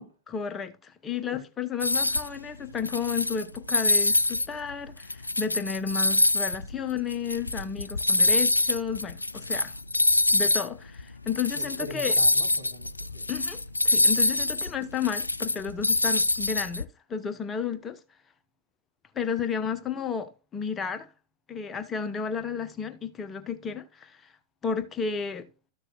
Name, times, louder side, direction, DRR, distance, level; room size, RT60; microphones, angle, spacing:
voice 1, 0.3-9.7 10.3-12.1 13.3-18.0 19.1-21.1 21.5-24.2 24.6-25.5, left 6 dB, 20° left, 1.0 m, -32 dB
voice 2, 1.1-1.4 11.5-13.3, equal, 85° right, 2.6 m, -42 dB
sound 1, 1.8-2.3 2.8-4.5 4.9-10.7 11.0-11.1 11.3-16.8, left 2 dB, 80° left, 0.3 m, -25 dB
13.5 x 6.6 x 2.3 m
figure-of-eight pair, 90°, 0 cm